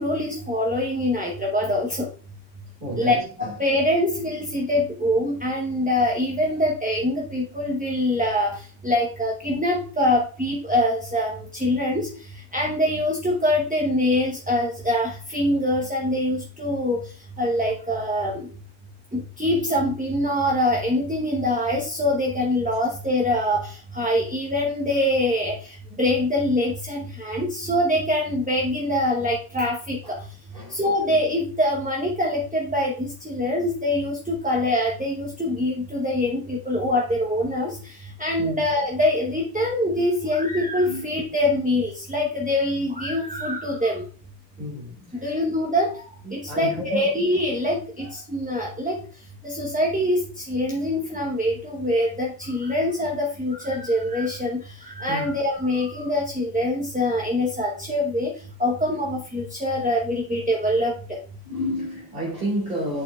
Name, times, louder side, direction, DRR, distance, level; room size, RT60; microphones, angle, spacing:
voice 1, 0.0-2.1 2.9-12.1 12.5-17.0 17.4-18.5 19.1-30.2 30.7-44.0 45.2-45.9 46.3-49.0 49.4-58.3 58.6-61.2, left 1 dB, 10° right, 0.7 m, -24 dB
voice 2, 2.8-3.6 30.0-30.1 30.5-30.8 38.4-38.5 40.8-41.2 44.6-45.4 46.2-47.1 48.0-48.1 55.1-55.3 61.4-63.0, equal, 55° right, 2.2 m, -31 dB
10.0 x 4.5 x 2.3 m
omnidirectional pair, 1.2 m